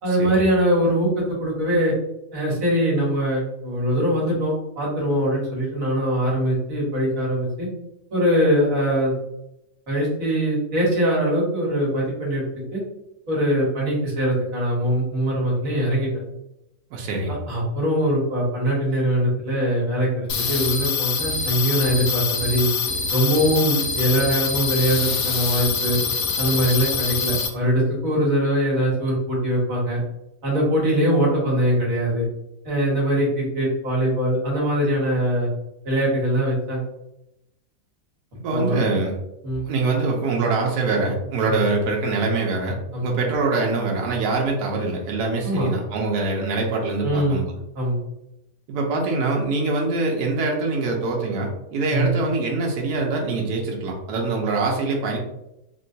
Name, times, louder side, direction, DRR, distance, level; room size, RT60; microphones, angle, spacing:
voice 1, 0.0-1.9 2.3-7.7 8.1-9.1 9.9-12.4 12.7-12.8 13.3-16.1 17.3-22.7 23.1-26.0 26.4-30.0 30.4-32.3 32.6-35.5 35.8-36.8 38.5-38.8 39.4-39.6 41.5-41.6 42.9-43.1 45.4-45.7 47.0-47.4 47.7-48.0 51.9-52.1, equal, 55° right, -5 dB, 1.7 m, -22 dB
voice 2, 16.9-17.4 38.4-39.1 39.6-47.4 48.7-55.2, right 3 dB, 75° right, 0 dB, 1.3 m, -24 dB
sound 1, 20.3-27.5, left 5 dB, 85° left, 1.3 m, -25 dB
4.0 x 2.2 x 2.7 m, 0.86 s
omnidirectional pair, 1.7 m